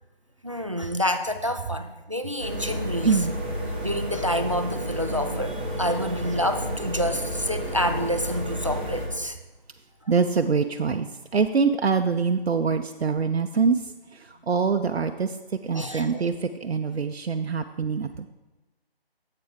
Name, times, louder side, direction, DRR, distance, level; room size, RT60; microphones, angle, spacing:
voice 1, 0.4-3.2 3.8-9.4 15.7-16.3, equal, 30° right, 8 dB, 0.4 m, -28 dB
sound 1, 2.4-9.1, equal, 10° right, 0.8 m, -31 dB
voice 2, 10.1-11.1 11.3-13.8 14.1-15.4 15.6-18.3, right 5 dB, 90° right, 6 dB, 0.6 m, -24 dB
9.4 x 7.6 x 3.5 m, 1.1 s
figure-of-eight pair, 165°, 31 cm